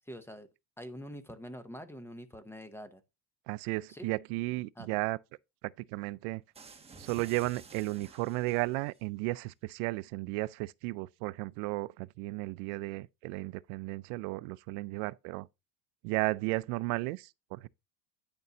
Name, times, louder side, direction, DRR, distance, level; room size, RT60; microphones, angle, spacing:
voice 1, 0.1-0.5 0.8-3.0 3.9-4.1 4.8-5.0, equal, 5° left, 0.6 m, -45 dB
voice 2, 3.5-5.2 5.6-6.4 7.0-15.5 16.0-17.7, right 22 dB, 75° right, 0.5 m, -34 dB
sound 1, 6.5-9.0, right 5 dB, 15° right, 1.0 m, -52 dB
9.5 x 6.8 x 2.7 m
cardioid pair, 140°, 43 cm